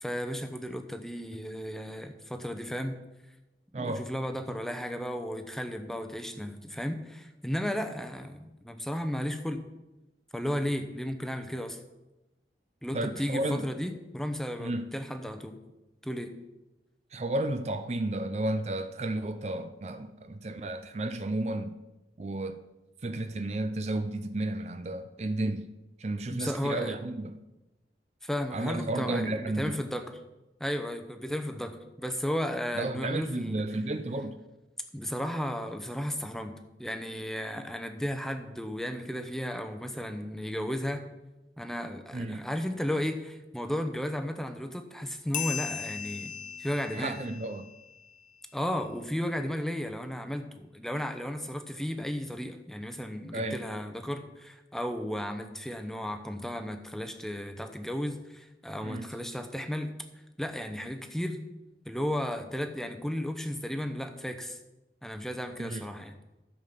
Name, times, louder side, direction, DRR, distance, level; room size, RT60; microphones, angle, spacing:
voice 1, 0.0-3.0 3.8-9.6 10.3-11.8 12.8-15.6 16.0-16.3 26.3-27.0 28.2-30.2 30.6-33.6 34.9-36.5 36.8-41.0 41.6-46.3 46.6-47.2 48.5-59.9 60.4-61.4 61.9-64.6 65.0-66.2, equal, ahead, 7 dB, 0.8 m, -34 dB
voice 2, 3.7-4.1 12.9-13.7 14.6-15.0 17.1-21.7 22.2-22.6 23.0-25.7 26.0-27.3 28.5-29.8 32.8-34.4 42.1-42.5 46.9-47.7 53.3-53.6 58.8-59.1 65.6-65.8, right 2 dB, 40° right, 9 dB, 0.5 m, -32 dB
sound 1, 45.3-48.4, left 8 dB, 45° left, 0.7 m, -38 dB
13.0 x 7.4 x 5.3 m, 1.0 s
head